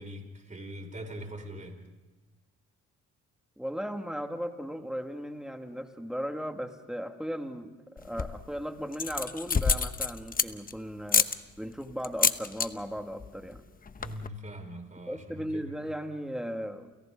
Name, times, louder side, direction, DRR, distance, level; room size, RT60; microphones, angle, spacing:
voice 1, 0.0-1.8 14.0-15.8, equal, 25° right, 5 dB, 4.8 m, -42 dB
voice 2, 3.6-11.3 11.6-13.6 15.0-16.9, equal, ahead, 5 dB, 2.2 m, -36 dB
sound 1, 8.0-8.5 8.9-10.7 11.1-11.4 12.0-12.7 13.0-13.3 13.5-13.6 13.9-14.3, left 5 dB, 30° left, 1.0 m, -27 dB
29.5 x 29.0 x 3.9 m, 1.2 s
cardioid pair, 90°, 30 cm